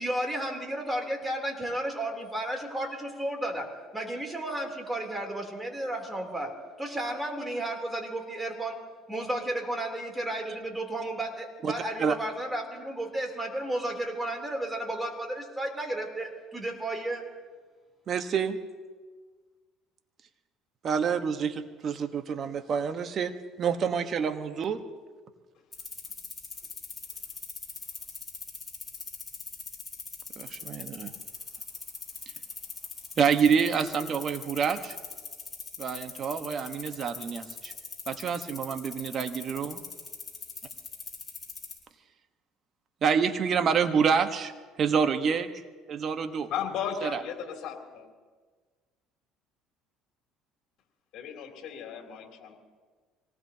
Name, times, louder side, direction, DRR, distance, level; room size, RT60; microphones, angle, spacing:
voice 1, 0.0-8.8 9.1-17.2, right 1 dB, 10° right, 3.3 m, -33 dB
voice 2, 18.1-18.6 20.8-23.3 23.6-24.8 30.4-31.1 33.2-35.0 35.8-37.7 38.1-39.7 43.0-44.5 44.8-45.5 45.9-46.5 47.0-47.2, right 6 dB, 45° right, 1.3 m, -27 dB
sound 1, 25.7-41.8, left 5 dB, 25° left, 6.0 m, -40 dB
voice 3, 46.5-48.0 51.1-52.5, left 8 dB, 60° left, 3.2 m, -35 dB
25.5 x 18.5 x 2.9 m
supercardioid pair, 90°, 0 cm